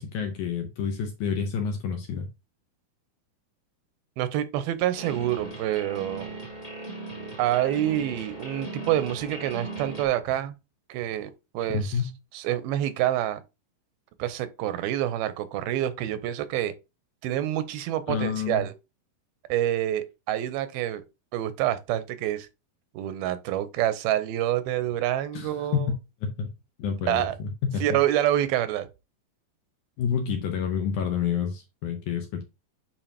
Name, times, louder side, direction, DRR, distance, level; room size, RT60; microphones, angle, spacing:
voice 1, 0.0-2.3 11.7-12.1 18.1-18.7 25.3-26.5 26.8-27.8 30.0-32.4, left 7 dB, 70° left, 2.0 m, -29 dB
voice 2, 4.2-6.3 7.4-10.6 10.9-12.0 12.3-13.4 14.2-16.7 17.2-18.7 19.5-21.0 21.3-22.5 22.9-25.9 27.0-27.4 27.8-28.9, right 12 dB, 90° right, 2.5 m, -27 dB
sound 1, 4.9-10.0, right 2 dB, 45° left, 0.4 m, -38 dB
8.9 x 4.8 x 2.8 m
omnidirectional pair, 4.4 m